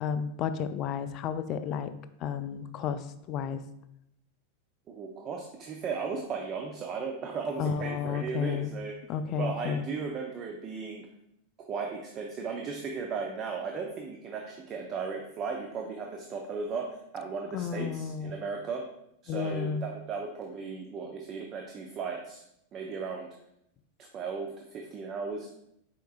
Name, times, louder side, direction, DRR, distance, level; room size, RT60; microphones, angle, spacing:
voice 1, 0.0-1.9 2.2-3.6 7.6-8.7 9.1-9.9 17.5-18.3 19.3-19.8, left 7 dB, 35° left, 11 dB, 0.3 m, -32 dB
voice 2, 4.9-9.0 9.4-11.1 11.7-18.8 19.2-22.4 22.7-23.3 24.0-25.5, right 5 dB, 30° right, 2 dB, 0.5 m, -36 dB
4.4 x 4.3 x 2.4 m, 0.78 s
figure-of-eight pair, 90°, 0 cm